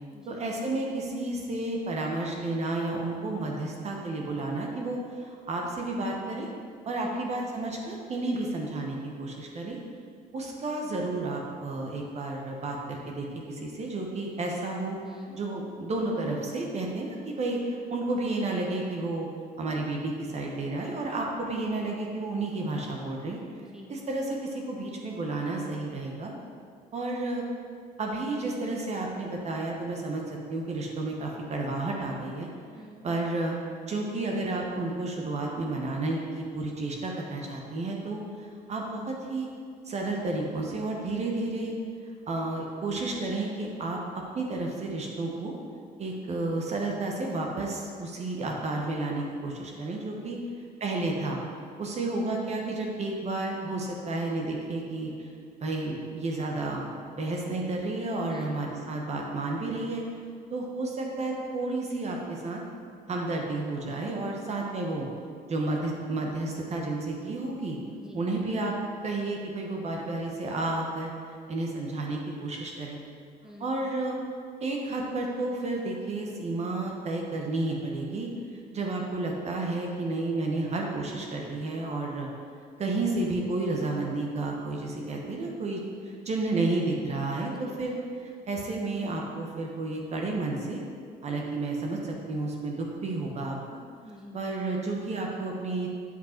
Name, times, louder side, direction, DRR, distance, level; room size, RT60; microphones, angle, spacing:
voice 1, 0.3-6.5 6.8-9.8 10.3-15.0 15.3-19.3 19.6-23.4 23.9-26.3 26.9-27.4 28.0-32.5 33.0-33.6 33.9-39.5 39.8-41.7 42.3-44.0 44.3-45.5 46.0-50.4 50.8-51.4 51.8-55.3 55.6-60.0 60.5-62.6 63.1-65.1 65.5-67.8 68.1-68.7 69.0-71.1 71.5-73.0 73.6-74.1 74.6-78.3 78.7-82.3 82.8-87.9 88.2-90.8 91.2-93.8 94.3-95.9, right 2 dB, 40° right, 0 dB, 1.1 m, -31 dB
voice 2, 15.0-15.4 23.6-23.9 32.7-33.1 50.2-50.4 58.3-58.6 67.9-68.2 73.4-73.7 87.4-87.8 94.0-94.4, left 1 dB, 5° right, -2 dB, 1.1 m, -47 dB
8.3 x 5.1 x 4.5 m, 2.2 s
cardioid pair, 110°, 17 cm